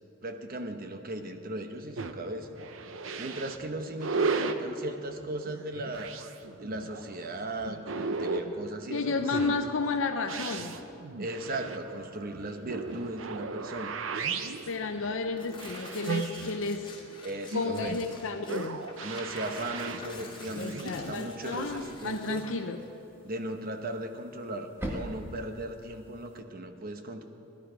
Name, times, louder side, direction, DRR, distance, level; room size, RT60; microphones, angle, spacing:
voice 1, 0.2-2.5 3.2-6.1 6.6-9.6 11.2-13.9 17.2-18.0 19.0-22.4 23.2-27.2, right 1 dB, 50° right, 6 dB, 1.0 m, -37 dB
sound 1, 2.0-20.9, right 4 dB, 90° right, 0.7 m, -36 dB
voice 2, 8.9-10.8 14.5-17.0 17.5-18.9 20.6-22.8, left 3 dB, 85° left, 5 dB, 0.6 m, -32 dB
Tearing, 11.4-25.7, left 4 dB, 25° left, 2.3 m, -50 dB
sound 2, 19.3-26.4, right 1 dB, 10° right, 1.3 m, -45 dB
17.5 x 11.5 x 5.1 m, 2.8 s
head